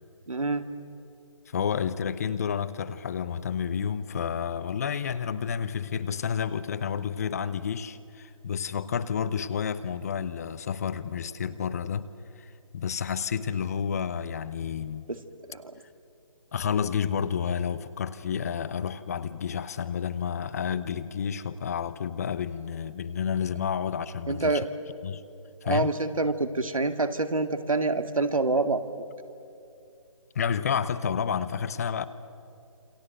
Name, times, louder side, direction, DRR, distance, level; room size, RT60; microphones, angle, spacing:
voice 1, 0.3-0.6 15.1-15.2 15.5-15.6 24.3-24.7 25.6-28.8, right 3 dB, 75° right, 8 dB, 2.2 m, -26 dB
voice 2, 1.5-12.1 12.4-15.1 16.5-24.7 25.0-25.2 25.6-25.9 30.3-32.0, left 7 dB, 30° left, 15 dB, 0.7 m, -30 dB
28.0 x 26.0 x 7.8 m, 2.6 s
figure-of-eight pair, 150°, 17 cm